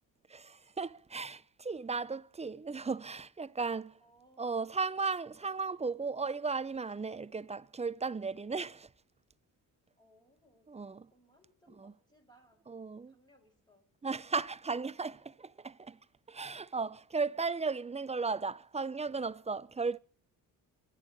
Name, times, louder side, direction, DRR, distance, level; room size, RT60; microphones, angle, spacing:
voice 1, 0.3-4.0 4.4-8.9 10.7-11.1 11.8-11.9 12.7-13.1 14.0-16.0 16.3-20.0, right 4 dB, 15° right, 0.6 m, -36 dB
voice 2, 4.0-4.6 10.0-12.7 13.1-13.9, equal, 10° left, 6.2 m, -66 dB
29.5 x 11.0 x 3.2 m
cardioid pair, 75°, 38 cm